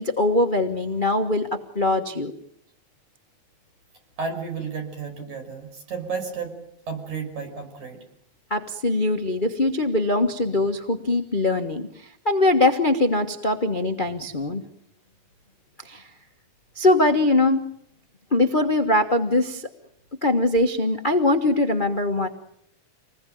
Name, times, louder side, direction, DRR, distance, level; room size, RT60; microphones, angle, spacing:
voice 1, 0.0-1.5 1.7-2.3 8.5-14.6 15.8-16.0 16.7-17.6 18.3-19.7 20.2-22.3, left 2 dB, 45° left, 6 dB, 0.6 m, -22 dB
voice 2, 4.2-6.5 6.9-8.0, right 5 dB, 75° right, 5 dB, 7.2 m, -32 dB
27.0 x 20.5 x 9.2 m, 0.75 s
omnidirectional pair, 3.4 m